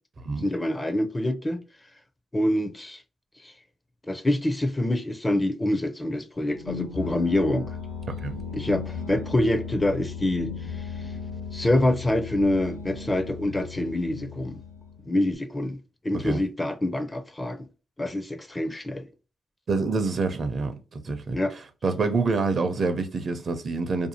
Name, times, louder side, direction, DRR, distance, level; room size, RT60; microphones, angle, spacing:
voice 1, 0.4-1.6 2.3-3.0 3.4-3.5 4.1-7.7 8.5-10.9 11.5-14.6 15.1-15.8 16.0-17.7 18.0-19.1 21.3-21.5, left 1 dB, 15° left, 0.4 m, -26 dB
sound 1, 6.4-15.2, left 5 dB, 85° left, 0.8 m, -36 dB
voice 2, 19.7-24.1, right 4 dB, 50° right, 0.5 m, -27 dB
2.6 x 2.4 x 2.7 m
cardioid pair, 70°, 0 cm